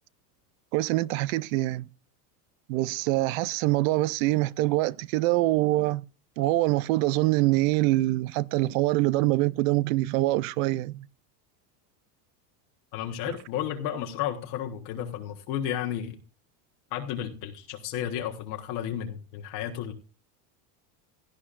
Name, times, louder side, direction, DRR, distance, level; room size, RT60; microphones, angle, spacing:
voice 1, 0.7-1.9 2.7-6.0 6.4-11.1 13.3-13.4, right 18 dB, 60° right, 0.5 m, -24 dB
voice 2, 12.9-16.2 16.9-19.9, left 10 dB, 45° left, 1.2 m, -32 dB
17.0 x 11.5 x 2.5 m
supercardioid pair, 160°, 47 cm